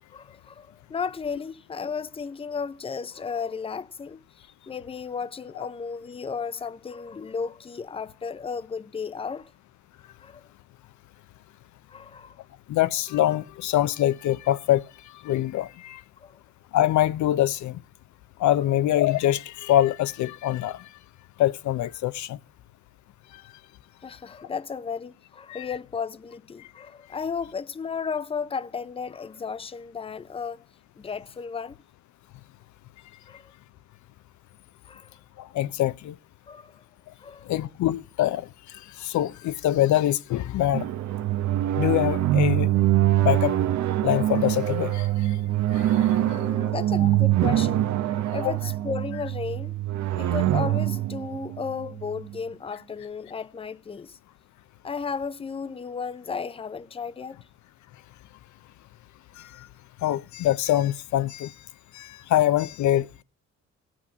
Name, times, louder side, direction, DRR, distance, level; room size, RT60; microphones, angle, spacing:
voice 1, 0.1-4.2 4.7-9.5 10.2-10.4 11.9-12.4 16.2-16.4 24.0-30.6 31.0-31.8 33.3-33.5 34.9-35.2 36.5-36.8 37.2-37.5 46.2-47.9 48.3-49.8 50.1-54.2 54.8-57.4, left 5 dB, 20° left, 0.6 m, -34 dB
voice 2, 12.7-14.8 15.2-16.0 16.7-17.8 18.4-20.8 21.4-22.4 25.5-25.7 35.4-36.1 37.5-38.5 39.0-40.9 41.8-42.7 43.2-43.6 44.0-45.3 45.7-46.0 46.3-46.4 47.0-47.1 48.4-48.5 59.4-59.7 60.0-61.5 61.9-63.2, left 13 dB, 75° left, 0.6 m, -24 dB
sound 1, 40.7-52.4, right 13 dB, 70° right, 0.8 m, -24 dB
16.0 x 6.3 x 8.4 m
cardioid pair, 90°, 30 cm